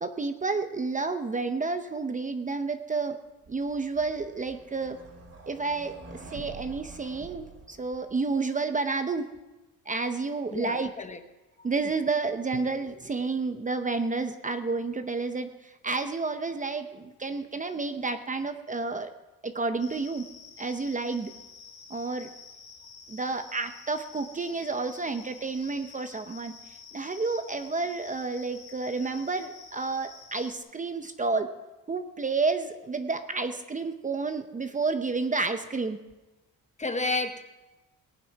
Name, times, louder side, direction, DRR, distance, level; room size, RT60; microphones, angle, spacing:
voice 1, 0.0-3.2 3.5-5.0 5.5-9.3 9.9-10.9 11.6-19.1 19.4-20.3 20.6-21.3 21.9-22.3 23.1-26.5 26.9-31.5 31.9-36.0, right 3 dB, 20° right, 8 dB, 0.7 m, -30 dB
sound 1, 3.5-8.4, right 3 dB, 45° right, 2.8 m, -47 dB
voice 2, 10.5-11.2 11.6-11.7 36.8-37.4, left 2 dB, 20° left, 8 dB, 0.9 m, -31 dB
sound 2, 19.8-30.6, left 5 dB, 60° left, 3.1 m, -49 dB
18.5 x 9.3 x 5.8 m, 1.1 s
cardioid pair, 150°, 34 cm